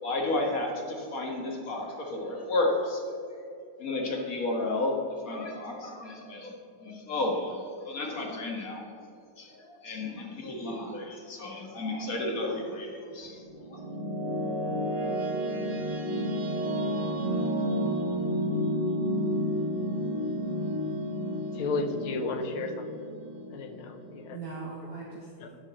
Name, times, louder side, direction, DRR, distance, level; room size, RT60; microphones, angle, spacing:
voice 1, 0.0-3.0 3.8-8.9 9.4-13.8, left 2 dB, 45° left, 0 dB, 1.8 m, -32 dB
voice 2, 7.1-8.0 24.3-25.6, right 4 dB, 50° right, -6 dB, 1.9 m, -42 dB
sound 1, 13.2-24.3, equal, 90° right, 2.4 m, -31 dB
voice 3, 21.6-23.0 23.5-24.4 25.4-25.5, left 3 dB, 85° left, 7 dB, 1.7 m, -33 dB
11.5 x 5.0 x 7.5 m, 2.5 s
omnidirectional pair, 2.2 m